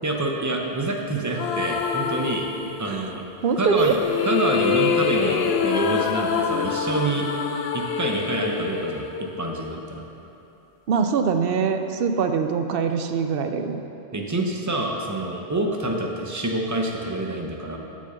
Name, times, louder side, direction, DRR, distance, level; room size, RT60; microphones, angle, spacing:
voice 1, 0.0-2.5 2.8-3.2 3.6-7.3 7.7-10.0 14.1-17.8, right 2 dB, 20° right, 1 dB, 0.8 m, -27 dB
sound 1, 1.3-3.1 3.8-9.9, left 6 dB, 75° left, 0.8 m, -26 dB
voice 2, 3.4-3.9 10.9-13.8, right 6 dB, 65° right, 7 dB, 0.8 m, -23 dB
7.8 x 6.2 x 6.8 m, 2.8 s
omnidirectional pair, 1.1 m